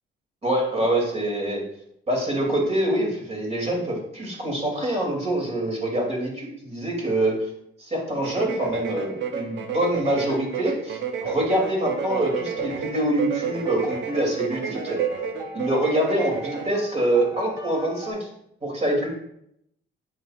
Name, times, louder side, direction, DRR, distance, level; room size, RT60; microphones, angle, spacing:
voice 1, 0.4-1.6 2.1-7.5 7.8-15.0 15.5-18.3 18.6-19.1, right 1 dB, 35° right, -1 dB, 2.7 m, -25 dB
sound 1, 8.2-16.7, right 7 dB, 65° right, 0.8 m, -31 dB
sound 2, 11.9-18.1, left 2 dB, 15° right, 1.2 m, -41 dB
7.6 x 5.9 x 2.4 m, 0.76 s
cardioid pair, 90°, 20 cm